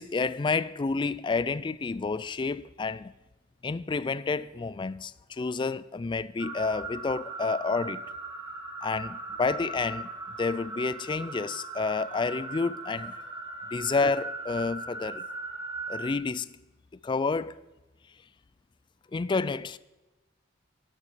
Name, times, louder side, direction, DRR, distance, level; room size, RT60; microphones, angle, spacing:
voice 1, 0.0-3.1 3.6-8.0 8.8-10.1 10.4-13.2 13.7-15.2 15.9-16.5 17.0-17.5 19.1-19.8, left 4 dB, 25° left, 0.3 m, -29 dB
sound 1, 6.4-16.1, right 3 dB, 20° right, 1.7 m, -39 dB
12.5 x 11.0 x 4.9 m
head